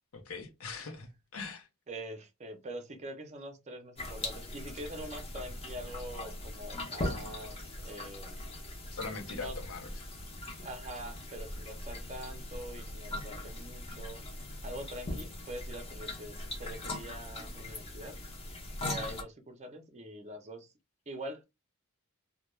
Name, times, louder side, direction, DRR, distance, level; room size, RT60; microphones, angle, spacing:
voice 1, 0.1-1.7 8.9-10.1, left 4 dB, 65° left, 0.6 m, -42 dB
voice 2, 1.9-8.4 9.3-9.6 10.6-14.2 14.6-18.2 18.8-20.7 21.1-21.4, right 1 dB, 30° right, 0.5 m, -44 dB
sound 1, 4.0-19.2, left 1 dB, 25° left, 0.6 m, -40 dB
2.2 x 2.2 x 2.9 m
head